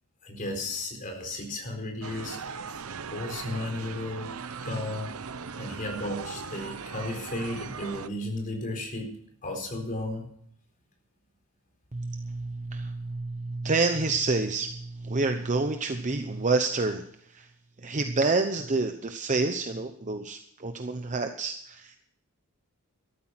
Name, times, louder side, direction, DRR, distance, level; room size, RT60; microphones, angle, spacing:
voice 1, 0.2-2.4 3.1-4.3 4.6-5.1 5.6-9.2 9.4-10.2, left 1 dB, 40° left, 3 dB, 4.3 m, -34 dB
sound 1, 2.0-8.1, right 5 dB, 70° right, 0.8 m, -39 dB
voice 2, 11.9-17.0 17.3-17.5 17.8-22.0, right 3 dB, 35° right, 7 dB, 0.9 m, -28 dB
13.0 x 13.0 x 5.9 m, 0.66 s
head